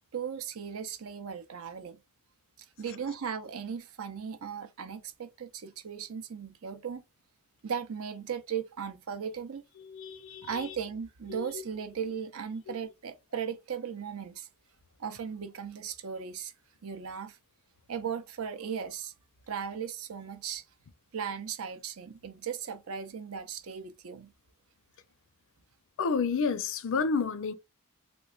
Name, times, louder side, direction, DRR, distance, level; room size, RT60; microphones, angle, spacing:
voice 1, 0.1-2.0 2.8-7.0 7.6-9.6 10.4-14.5 15.0-16.5 16.8-17.4 17.9-19.1 19.5-20.6 21.1-24.3, right 7 dB, 70° right, 0.6 m, -37 dB
voice 2, 9.8-10.8 11.3-11.6 12.7-12.8 26.0-27.5, left 5 dB, 65° left, 0.5 m, -31 dB
3.2 x 3.0 x 2.3 m
head